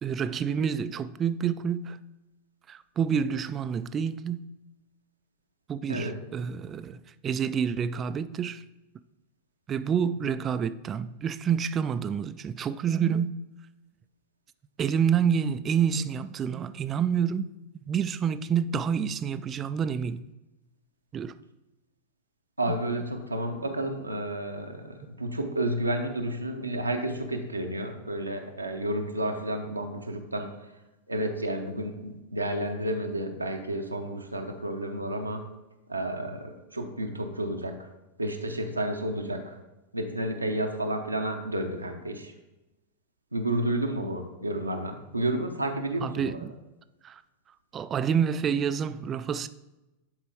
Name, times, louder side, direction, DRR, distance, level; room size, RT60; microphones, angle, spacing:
voice 1, 0.0-2.0 2.7-4.5 5.7-8.6 9.7-13.3 14.8-17.5 17.9-20.2 21.1-21.3 46.0-46.5 47.0-47.2 47.7-49.5, right 7 dB, 25° right, 0.3 m, -28 dB
voice 2, 22.6-30.5 31.1-35.4 35.9-37.8 38.2-39.6 39.9-42.3 43.3-46.4, right 1 dB, 85° right, 0.7 m, -31 dB
10.5 x 4.4 x 3.4 m
figure-of-eight pair, 90°, 0 cm